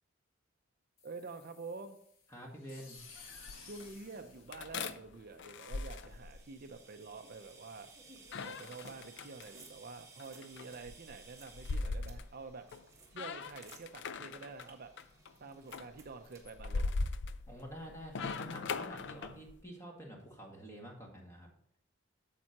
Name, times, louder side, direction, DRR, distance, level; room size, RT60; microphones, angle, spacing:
sound 1, 1.0-5.3, left 4 dB, 80° left, 1.5 m, -55 dB
voice 1, 1.0-2.0 3.6-7.9 8.4-12.7 13.1-14.9 15.4-17.0, right 4 dB, 45° right, 7 dB, 0.6 m, -48 dB
voice 2, 2.3-3.0 17.5-21.5, equal, 15° left, 0 dB, 1.9 m, -48 dB
sound 2, 3.0-3.9 4.5-6.8 8.2-9.5 10.2-12.9 13.1-14.7 15.0-15.3 15.7-19.6, left 3 dB, 60° left, 0.5 m, -40 dB
sound 3, 5.7-16.6, right 4 dB, 15° right, 1.4 m, -58 dB
8.8 x 7.4 x 2.9 m, 0.65 s
head